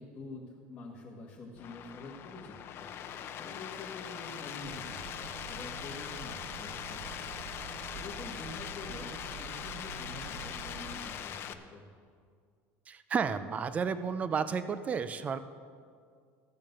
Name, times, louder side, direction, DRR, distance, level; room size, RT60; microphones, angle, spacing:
voice 1, 0.0-2.9 3.4-7.4 7.9-11.9, left 3 dB, 25° left, -5 dB, 1.8 m, -47 dB
sound 1, 1.6-11.5, left 9 dB, 40° left, 0.7 m, -41 dB
sound 2, 4.6-11.0, right 8 dB, 70° right, 0.7 m, -47 dB
voice 2, 12.9-15.4, right 6 dB, 25° right, 12 dB, 0.5 m, -32 dB
15.0 x 7.3 x 6.7 m, 2.1 s
cardioid pair, 135°, 6 cm